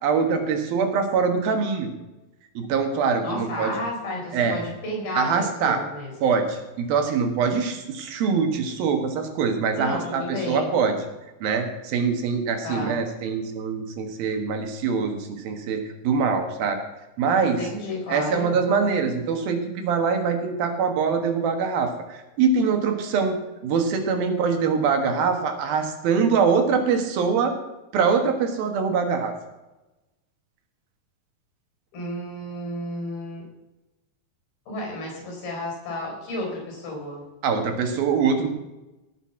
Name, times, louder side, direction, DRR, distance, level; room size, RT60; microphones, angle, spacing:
voice 1, 0.0-1.9 2.5-3.7 4.3-4.6 5.1-5.8 6.2-11.0 11.4-16.8 17.2-17.6 18.1-27.6 27.9-29.3 37.4-38.5, right 5 dB, 75° right, 5 dB, 3.3 m, -23 dB
voice 2, 3.2-6.3 9.7-10.7 12.6-13.0 17.6-18.6 31.9-33.4 34.7-37.2, left 1 dB, 75° left, 1 dB, 6.4 m, -32 dB
17.5 x 7.0 x 5.7 m, 1.0 s
omnidirectional pair, 4.4 m